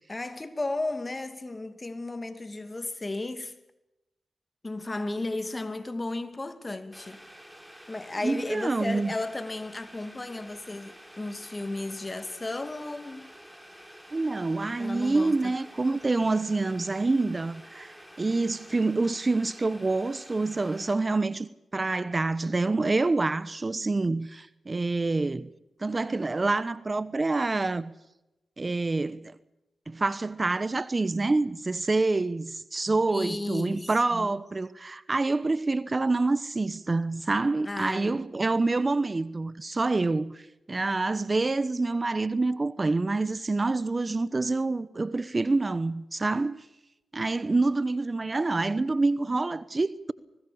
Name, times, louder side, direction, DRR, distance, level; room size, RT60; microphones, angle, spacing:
voice 1, 0.1-3.5 4.6-7.2 7.9-13.3 14.8-15.5 33.1-34.3 37.6-38.2, left 2 dB, 30° left, 2.5 m, -34 dB
Boiling, 6.9-20.9, equal, 5° right, 4.7 m, -50 dB
voice 2, 8.2-9.1 14.1-25.5 25.8-27.9 28.6-29.3 29.9-40.4 40.7-46.6 47.1-50.1, right 3 dB, 35° right, 1.0 m, -27 dB
23.5 x 19.0 x 6.9 m
cardioid pair, 45°, 0 cm